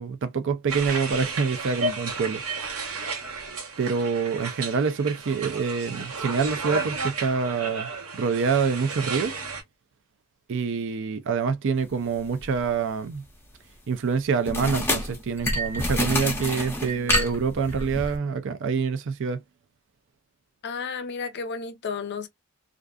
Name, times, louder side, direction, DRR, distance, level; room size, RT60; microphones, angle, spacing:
voice 1, 0.0-2.4 3.8-9.4 10.5-13.2 13.9-19.4, right 5 dB, 60° right, 0.4 m, -26 dB
sound 1, 0.7-9.6, right 3 dB, 80° right, 1.1 m, -33 dB
sound 2, 12.4-12.6 14.5-18.2, left 1 dB, 10° left, 0.6 m, -27 dB
voice 2, 20.6-22.3, left 5 dB, 50° left, 0.5 m, -32 dB
2.5 x 2.4 x 2.2 m
head